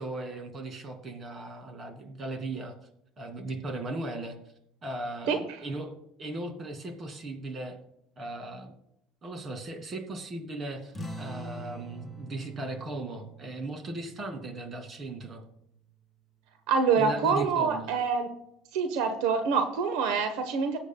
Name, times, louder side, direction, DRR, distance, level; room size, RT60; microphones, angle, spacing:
voice 1, 0.0-2.7 3.2-4.4 4.8-7.8 8.2-8.7 9.2-15.4 16.9-17.9, right 2 dB, 30° right, 5 dB, 2.4 m, -37 dB
sound 1, 10.9-16.0, right 2 dB, 10° left, 1.3 m, -44 dB
voice 2, 16.7-18.3 18.7-20.8, right 5 dB, 85° right, 8 dB, 1.1 m, -26 dB
18.5 x 8.2 x 2.3 m, 0.76 s
cardioid pair, 120°, 0 cm